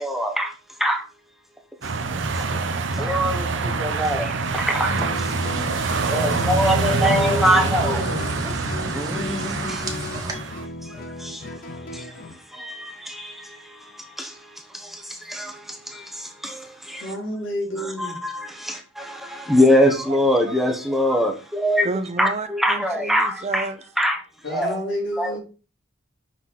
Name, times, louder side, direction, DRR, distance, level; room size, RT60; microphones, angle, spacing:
voice 1, 0.0-0.4 0.8-1.0 3.1-3.3 3.8-4.2 4.7-4.9 6.1-7.9 19.5-21.3 21.6-21.9 22.2-22.3 22.6-23.6 24.0-24.1 24.5-24.7 25.2-25.3, equal, ahead, 1.0 m, -20 dB
sound 1, 1.8-10.7, right 3 dB, 70° right, 0.8 m, -25 dB
Guitar, 4.9-12.4, left 3 dB, 50° left, 0.6 m, -35 dB
sound 2, 5.1-10.3, right 3 dB, 20° right, 1.5 m, -38 dB
voice 2, 6.5-8.2 17.0-18.2 24.4-25.4, equal, 80° left, 3.4 m, -30 dB
voice 3, 20.1-20.6 21.8-23.8, right 3 dB, 35° right, 0.7 m, -31 dB
6.2 x 5.9 x 4.1 m
head